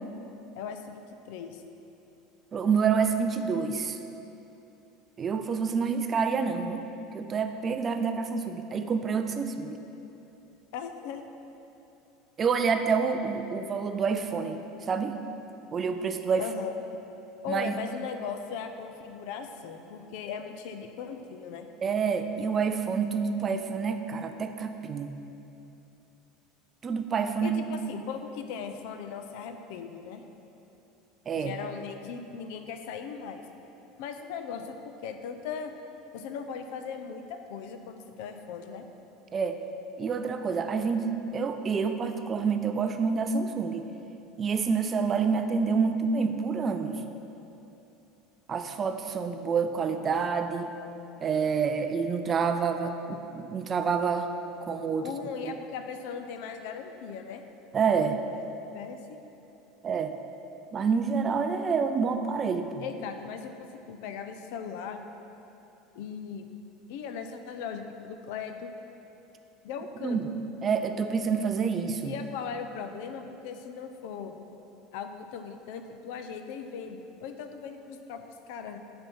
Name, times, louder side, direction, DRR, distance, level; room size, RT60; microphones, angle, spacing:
voice 1, 0.5-1.6 10.7-11.2 16.4-16.7 17.4-21.7 27.4-30.2 31.3-33.4 34.0-35.7 36.1-38.8 55.0-57.4 58.6-59.2 62.8-65.0 65.9-66.5 66.9-68.7 69.6-70.3 72.0-74.3 74.9-78.8, left 6 dB, 65° left, 7 dB, 0.6 m, -38 dB
voice 2, 2.5-4.0 5.2-6.8 7.1-9.8 12.4-14.6 14.9-15.1 15.7-16.4 17.5-17.7 21.8-25.1 26.8-27.6 31.3-31.5 39.3-39.6 40.0-43.9 44.4-47.0 48.5-50.8 51.2-54.3 54.6-55.0 55.5-55.6 57.7-58.2 59.8-60.1 60.7-62.8 70.0-70.3 70.6-72.1, right 5 dB, 25° right, 7 dB, 0.4 m, -28 dB
10.5 x 4.4 x 5.5 m, 2.9 s
cardioid pair, 165°, 0 cm